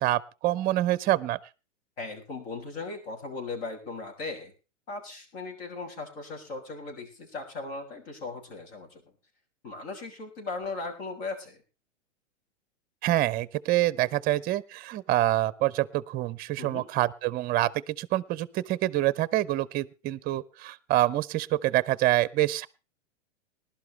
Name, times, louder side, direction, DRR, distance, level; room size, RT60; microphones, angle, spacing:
voice 1, 0.0-1.4 13.0-22.7, right 15 dB, 25° right, 20 dB, 0.7 m, -26 dB
voice 2, 2.0-4.5 4.9-9.0 9.6-11.6 16.6-16.9, left 3 dB, 55° left, 4 dB, 6.5 m, -38 dB
20.0 x 12.0 x 3.3 m, 0.31 s
hypercardioid pair, 110°, 36 cm